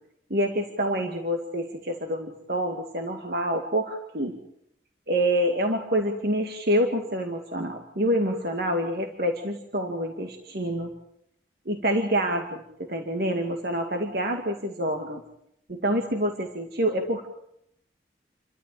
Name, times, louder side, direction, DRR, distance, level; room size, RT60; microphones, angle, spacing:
voice 1, 0.3-4.3 5.1-10.9 11.7-15.2 15.7-17.3, equal, 60° right, 3 dB, 2.3 m, -27 dB
29.5 x 13.0 x 8.6 m, 0.76 s
head